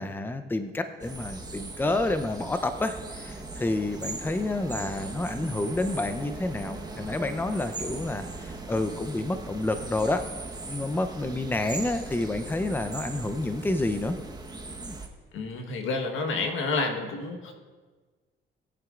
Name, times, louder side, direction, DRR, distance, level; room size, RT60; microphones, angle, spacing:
voice 1, 0.0-10.3 10.6-14.2 14.8-15.0, left 2 dB, 10° left, 8 dB, 0.6 m, -29 dB
sound 1, 1.0-15.1, right 2 dB, 20° right, 1.2 m, -39 dB
voice 2, 15.3-17.6, left 3 dB, 85° left, 4 dB, 1.4 m, -29 dB
19.5 x 9.1 x 2.5 m, 1.4 s
cardioid pair, 90°, 20 cm